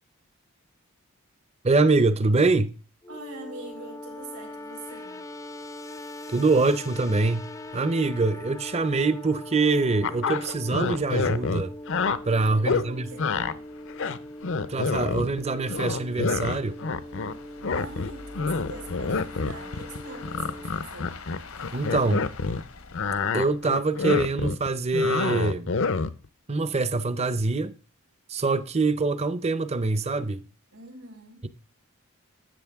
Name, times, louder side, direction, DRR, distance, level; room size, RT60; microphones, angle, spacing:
voice 1, 1.6-2.7 6.3-11.7 12.2-13.1 14.7-16.8 21.7-22.2 23.3-25.8 26.5-27.7 28.3-30.4, right 3 dB, 30° right, 0.6 m, -24 dB
sound 1, 3.0-20.7, left 1 dB, 15° left, 0.5 m, -41 dB
voice 2, 3.1-5.3 12.3-13.4 17.7-21.2 21.6-22.1 30.7-31.4, right 3 dB, 85° right, 4.6 m, -44 dB
sound 2, 7.7-7.8 8.1-8.2 8.6-8.7 9.0-9.1 9.7-24.1, left 4 dB, 80° left, 1.2 m, -47 dB
sound 3, 10.0-12.2 12.6-12.9 13.2-13.5 13.9-15.4 15.7-17.4 17.6-22.6 22.9-26.3, left 4 dB, 60° left, 0.7 m, -27 dB
12.5 x 8.3 x 3.5 m
head